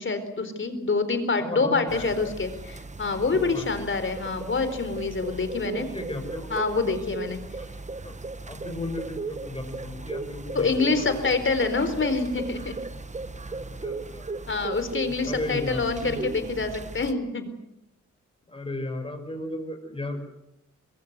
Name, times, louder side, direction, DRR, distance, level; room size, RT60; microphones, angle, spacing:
voice 1, 0.0-5.9 6.5-7.4 10.5-12.7 14.5-17.5, left 4 dB, 40° left, 10 dB, 4.1 m, -26 dB
voice 2, 1.4-2.3 3.3-3.8 5.9-6.5 8.0-8.1 8.5-11.3 13.5-14.2 15.2-16.3 18.5-20.2, left 1 dB, 20° left, 5 dB, 6.4 m, -35 dB
sound 1, 1.9-17.1, right 3 dB, 25° right, 1.3 m, -37 dB
23.0 x 22.0 x 8.1 m, 0.81 s
cardioid pair, 95°, 29 cm